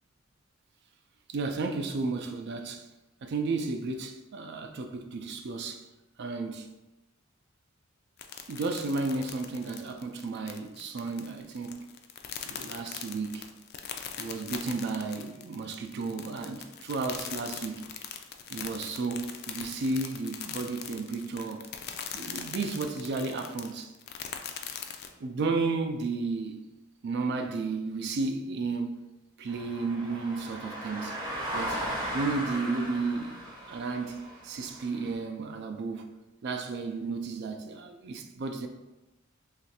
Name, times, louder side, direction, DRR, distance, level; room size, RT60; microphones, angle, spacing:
voice 1, 1.3-2.9 3.2-5.8 6.2-6.7 8.5-11.9 12.5-13.5 14.2-17.9 18.5-21.6 22.1-23.9 25.2-26.6 27.0-29.1 29.4-31.2 31.5-31.8 32.1-36.1 36.4-38.7, right 3 dB, 55° right, 0.4 m, -33 dB
sound 1, 8.2-25.1, left 8 dB, 50° left, 0.3 m, -41 dB
sound 2, 29.5-35.1, equal, 20° right, 0.7 m, -37 dB
3.1 x 2.4 x 4.2 m
head